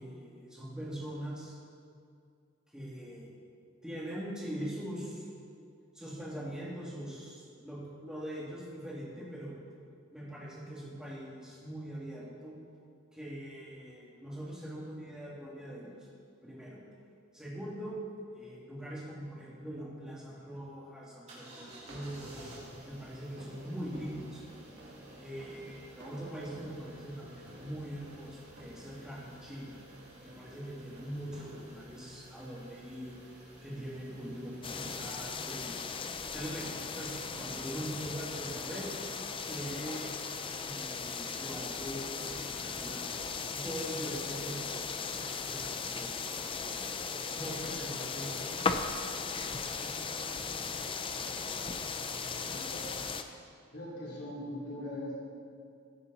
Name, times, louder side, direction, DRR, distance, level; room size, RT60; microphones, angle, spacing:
voice 1, 0.0-1.5 2.7-3.3 3.8-5.3 5.9-9.6 10.1-12.6 13.1-15.9 16.4-16.8 17.3-18.0 18.3-22.5 22.8-24.4 25.2-29.8 30.2-33.2 33.6-35.7 36.3-36.7 36.9-38.9 39.5-40.3 40.6-43.1 43.5-44.6 45.0-46.9 47.3-48.5, equal, 5° right, -6 dB, 2.6 m, -42 dB
sound 1, 21.3-35.7, right 1 dB, 35° right, 3.3 m, -54 dB
sound 2, 21.6-39.1, right 1 dB, 55° right, 1.5 m, -55 dB
sound 3, 34.6-53.2, left 5 dB, 25° left, 0.5 m, -37 dB
voice 2, 52.5-52.8 53.7-55.1, left 1 dB, 55° left, -7 dB, 3.5 m, -40 dB
15.5 x 9.8 x 4.2 m, 2.3 s
head